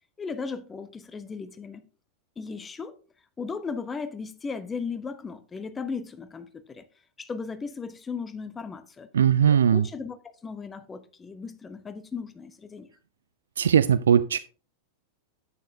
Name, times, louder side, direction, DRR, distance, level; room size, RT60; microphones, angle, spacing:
voice 1, 0.2-1.8 2.4-2.9 3.4-6.8 7.2-9.1 9.5-12.9, left 5 dB, 15° left, 0.8 m, -36 dB
voice 2, 9.1-9.9 13.6-14.4, right 8 dB, 65° right, 0.3 m, -19 dB
9.5 x 8.3 x 2.7 m
figure-of-eight pair, 90°, 0 cm